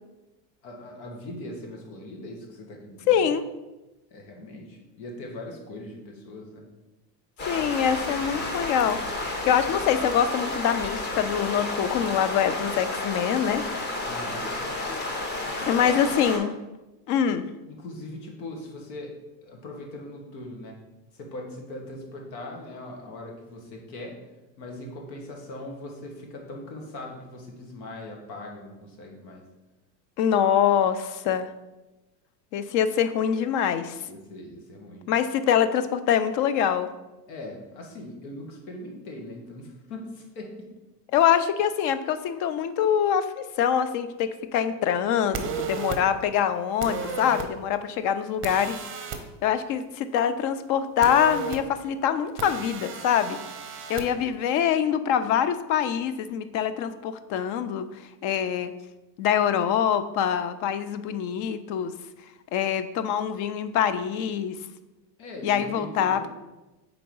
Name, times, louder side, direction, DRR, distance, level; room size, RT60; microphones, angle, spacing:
voice 1, 0.6-3.3 4.1-6.7 14.0-14.5 15.8-16.0 17.7-19.1 19.4-20.7 21.1-24.2 24.6-29.4 34.0-35.0 37.3-40.5 65.2-66.3, left 1 dB, 80° left, 1 dB, 1.7 m, -40 dB
voice 2, 3.1-3.4 7.5-13.6 15.7-16.5 17.1-17.5 30.2-31.5 32.5-34.0 35.1-36.9 41.1-48.8 49.4-53.4 53.9-57.9 58.2-58.7 59.2-61.9 62.5-64.6 65.4-66.3, left 9 dB, 40° left, 12 dB, 0.4 m, -24 dB
sound 1, 7.4-16.4, left 2 dB, 20° left, 0.9 m, -31 dB
sound 2, 45.3-46.0 46.8-47.5 48.4-49.2 51.0-51.6 52.4-54.0, right 5 dB, 25° right, 0.6 m, -33 dB
4.5 x 3.9 x 5.3 m, 1.0 s
supercardioid pair, 120°, 50 cm